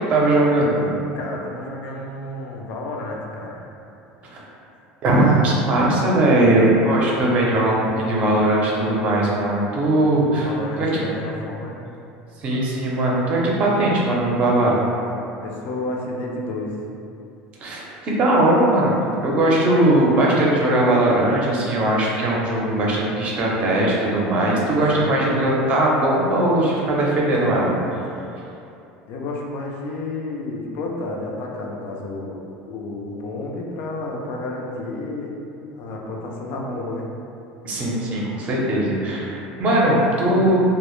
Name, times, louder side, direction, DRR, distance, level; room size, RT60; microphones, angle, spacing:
voice 1, 0.1-0.9 4.2-4.4 5.0-10.5 10.8-10.9 12.4-14.8 17.6-19.0 19.2-27.7 37.6-40.6, right 1 dB, 40° right, -4 dB, 0.5 m, -19 dB
voice 2, 1.1-3.6 10.3-11.8 15.4-16.7 24.9-25.2 28.2-28.3 29.1-32.4 32.7-35.3 35.7-37.1 40.3-40.6, left 2 dB, 60° left, -1 dB, 0.4 m, -31 dB
2.0 x 2.0 x 3.0 m, 2.7 s
supercardioid pair, 125°, 3 cm